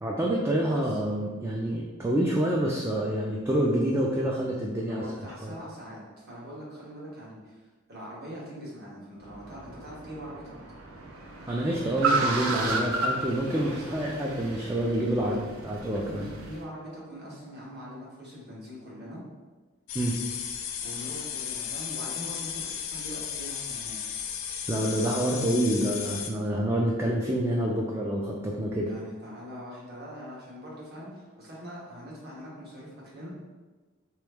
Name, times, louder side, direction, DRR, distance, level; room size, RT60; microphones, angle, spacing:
voice 1, 0.0-5.0 5.4-5.5 11.5-16.3 19.9-20.2 24.7-28.9, right 1 dB, 15° right, -3 dB, 0.3 m, -27 dB
voice 2, 0.6-1.0 4.9-7.6 7.9-10.5 13.5-14.2 15.2-15.5 15.8-19.2 20.8-24.0 28.9-33.3, equal, 50° right, -6 dB, 1.3 m, -43 dB
Car, 9.2-16.6, right 3 dB, 85° right, 0.6 m, -33 dB
sound 1, 19.9-26.3, left 8 dB, 70° left, 0.4 m, -35 dB
3.3 x 3.0 x 3.4 m, 1.3 s
head